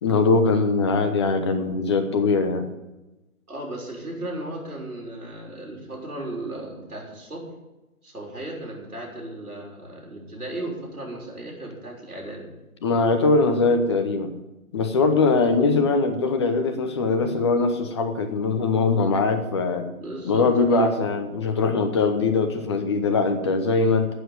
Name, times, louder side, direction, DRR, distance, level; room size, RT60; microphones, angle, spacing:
voice 1, 0.0-2.7 12.8-14.3 14.7-19.9 20.2-24.1, left 3 dB, 20° left, 6 dB, 0.9 m, -21 dB
voice 2, 3.5-7.5 8.0-12.5 15.3-15.5 19.7-20.9, right 1 dB, 80° right, -3 dB, 6.3 m, -36 dB
12.5 x 8.5 x 8.6 m, 1.0 s
figure-of-eight pair, 140°, 44 cm